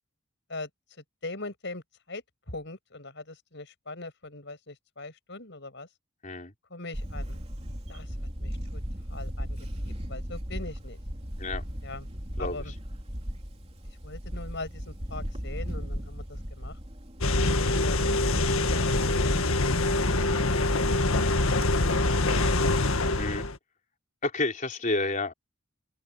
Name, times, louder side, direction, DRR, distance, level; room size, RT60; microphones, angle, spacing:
voice 1, 1.2-5.9 6.7-7.4 7.9-8.8 9.1-9.6 9.8-11.0 11.8-12.1 12.4-12.7 13.9-16.8 17.6-18.0, left 2 dB, 60° left, 7.3 m, -41 dB
Camera, 6.9-21.7, equal, 30° right, 3.4 m, -37 dB
sound 1, 17.2-23.6, left 2 dB, 85° left, 1.8 m, -24 dB
voice 2, 24.2-25.3, left 2 dB, 40° left, 4.4 m, -30 dB
open air
head